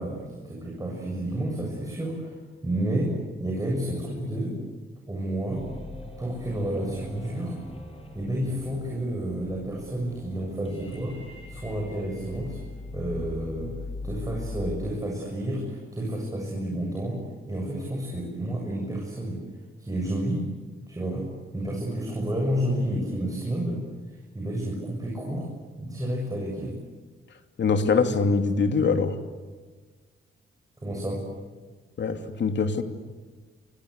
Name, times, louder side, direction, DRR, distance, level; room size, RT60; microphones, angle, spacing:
voice 1, 0.0-2.4 2.6-3.1 3.4-4.6 5.1-5.7 6.2-7.6 8.1-12.6 12.9-13.7 14.0-17.2 17.5-19.4 19.8-20.4 20.9-21.3 21.5-23.8 24.1-25.5 25.8-26.8 30.8-31.2, right 1 dB, 15° right, -2 dB, 7.3 m, -30 dB
sound 1, 5.5-14.8, left 2 dB, 25° left, 7.6 m, -40 dB
voice 2, 27.6-29.2 32.0-32.8, left 4 dB, 60° left, 7 dB, 2.8 m, -23 dB
29.0 x 25.0 x 8.2 m, 1.4 s
cardioid pair, 115°, 21 cm